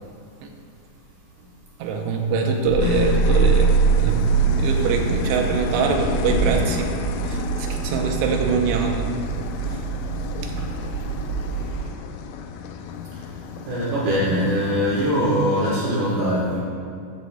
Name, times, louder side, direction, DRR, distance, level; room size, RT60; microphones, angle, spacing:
voice 1, 1.8-6.9 7.3-9.1 10.4-10.5, right 5 dB, 80° right, 2 dB, 2.7 m, -24 dB
sound 1, 2.7-11.9, right 5 dB, 65° left, 4.2 m, -24 dB
sound 2, 2.8-15.8, left 6 dB, 90° left, 3.0 m, -32 dB
voice 2, 13.7-16.6, equal, 65° right, -6 dB, 2.7 m, -22 dB
14.5 x 8.5 x 2.3 m, 2.5 s
omnidirectional pair, 5.4 m